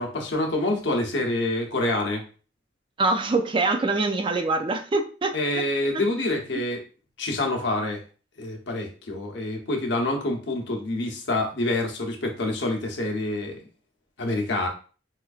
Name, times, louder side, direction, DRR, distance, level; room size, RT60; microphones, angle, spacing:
voice 1, 0.0-2.2 5.3-6.8 7.2-8.0 8.4-13.6 14.2-14.7, left 2 dB, 75° left, 2 dB, 0.8 m, -27 dB
voice 2, 3.0-5.3, right 3 dB, 30° right, 6 dB, 0.4 m, -24 dB
4.2 x 2.5 x 2.4 m, 0.37 s
head